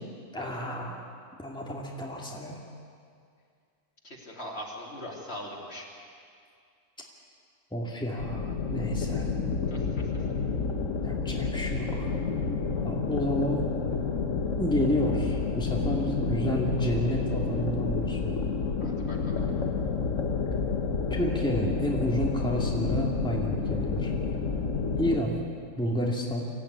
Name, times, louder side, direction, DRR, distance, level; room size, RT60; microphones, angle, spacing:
voice 1, 0.3-1.1 1.4-2.6 7.7-9.3 11.0-12.1 12.8-13.6 14.6-18.5 21.1-24.1 25.0-25.4 25.8-26.5, equal, 5° left, -2 dB, 2.6 m, -30 dB
voice 2, 4.0-5.9 9.7-9.9 18.8-19.4, equal, 50° left, -2 dB, 4.0 m, -41 dB
sound 1, 8.2-25.2, left 4 dB, 75° left, 1.7 m, -29 dB
25.0 x 16.0 x 9.8 m, 2.3 s
omnidirectional pair, 1.4 m